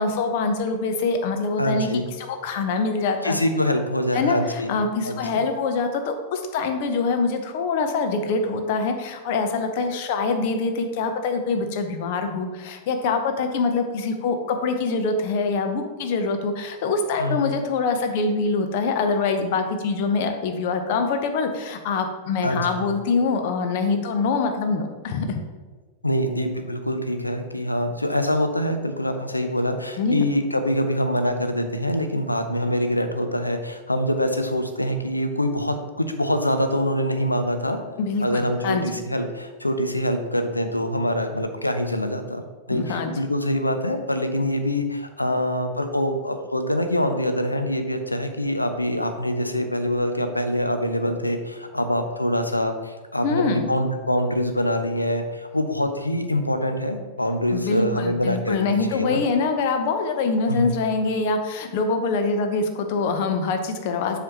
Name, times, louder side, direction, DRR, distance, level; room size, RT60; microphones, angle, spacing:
voice 1, 0.0-1.9 2.2-3.4 4.1-25.4 30.0-30.2 38.0-38.8 42.7-43.1 53.2-53.7 57.5-64.2, left 4 dB, 50° left, 6 dB, 0.7 m, -24 dB
voice 2, 1.6-2.1 3.2-4.8 5.0-5.4 17.2-17.5 22.4-22.9 26.0-37.8 38.2-42.4 42.7-59.2 60.5-60.7, left 1 dB, 85° left, 7 dB, 0.5 m, -25 dB
7.6 x 5.0 x 2.9 m, 1.3 s
figure-of-eight pair, 90°, 0 cm